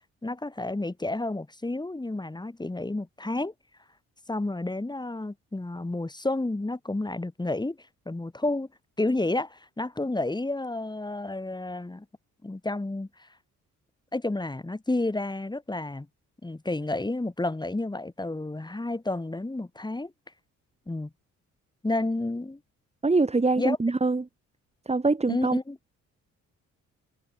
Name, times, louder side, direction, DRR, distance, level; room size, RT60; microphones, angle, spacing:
voice 1, 0.2-3.5 4.3-8.7 9.0-12.0 12.4-13.3 14.1-16.1 16.4-20.1 20.9-21.1 21.8-22.6 23.6-23.8 25.3-25.8, left 2 dB, 15° left, 6.4 m, -30 dB
voice 2, 23.0-24.3 24.9-25.6, right 3 dB, 20° right, 4.1 m, -24 dB
cardioid pair, 90°, 30 cm